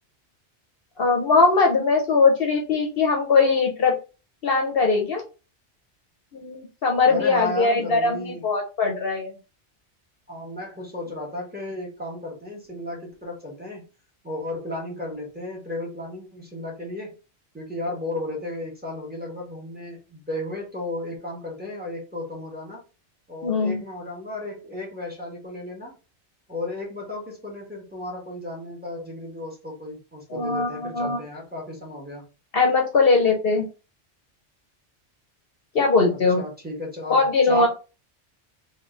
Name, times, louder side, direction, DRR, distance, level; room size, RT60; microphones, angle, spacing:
voice 1, 1.0-3.9 4.4-5.2 6.3-9.3 23.4-23.8 30.3-31.2 32.5-33.7 35.7-36.4 37.1-37.7, left 4 dB, 60° left, 1 dB, 1.0 m, -20 dB
voice 2, 7.1-8.4 10.3-13.9 14.2-17.2 17.5-22.8 23.3-26.0 26.5-32.2 36.1-37.7, left 1 dB, 10° right, -3 dB, 1.6 m, -34 dB
3.5 x 3.0 x 3.8 m, 0.32 s
omnidirectional pair, 1.2 m